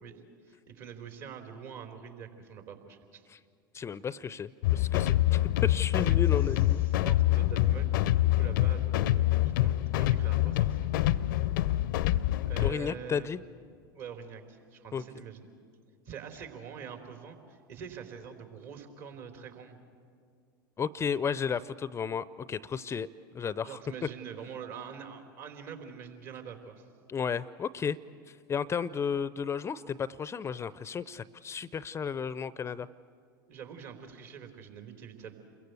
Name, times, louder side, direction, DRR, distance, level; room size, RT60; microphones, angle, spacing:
voice 1, 0.0-3.2 6.0-6.2 6.8-9.3 9.6-11.1 12.4-13.3 13.9-15.5 16.1-19.8 23.6-26.9 33.5-35.4, right 7 dB, 60° right, 5 dB, 3.9 m, -45 dB
voice 2, 3.7-6.8 12.6-13.4 14.9-15.0 20.8-23.1 23.3-23.8 27.1-28.0 28.3-32.9, left 6 dB, 25° left, 18 dB, 0.6 m, -33 dB
sound 1, 4.6-12.7, left 14 dB, 65° left, 0.7 m, -26 dB
29.0 x 22.5 x 8.2 m, 2.2 s
figure-of-eight pair, 80°, 11 cm